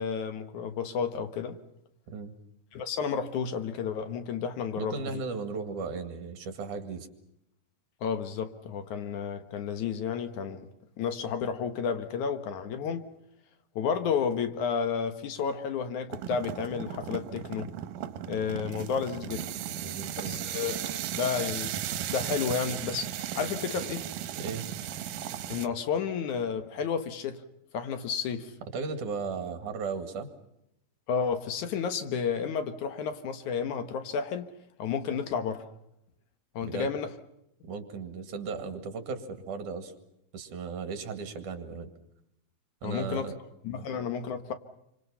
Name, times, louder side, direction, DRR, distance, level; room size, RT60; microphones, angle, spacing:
voice 1, 0.0-1.6 2.7-5.0 8.0-10.7 11.0-13.1 13.8-17.7 18.3-19.5 20.2-21.7 22.1-23.1 23.4-24.1 25.5-27.4 27.7-28.5 31.1-34.5 34.8-35.7 36.5-37.1 42.8-43.3 43.6-44.5, left 6 dB, 70° left, 2.7 m, -31 dB
voice 2, 4.8-7.1 19.8-20.4 24.4-24.7 28.7-30.3 36.6-36.9 37.6-39.9 40.3-41.9 42.8-43.4, right 4 dB, 70° right, 3.5 m, -36 dB
sound 1, 16.1-25.7, right 11 dB, 90° right, 2.7 m, -36 dB
28.0 x 26.0 x 5.7 m
omnidirectional pair, 3.7 m